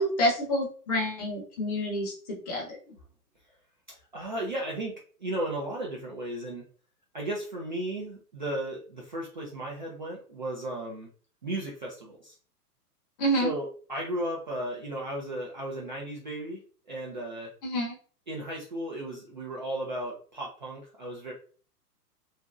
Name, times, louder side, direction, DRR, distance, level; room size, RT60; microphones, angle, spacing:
voice 1, 0.0-2.7 13.2-13.5 17.6-18.0, equal, 25° left, 0 dB, 0.7 m, -28 dB
voice 2, 3.9-4.9 5.2-6.6 7.1-11.1 11.4-12.3 13.4-16.6 16.9-17.5 18.3-21.3, right 1 dB, 30° right, -3 dB, 0.4 m, -35 dB
2.9 x 2.5 x 2.3 m, 0.41 s
figure-of-eight pair, 115°, 48 cm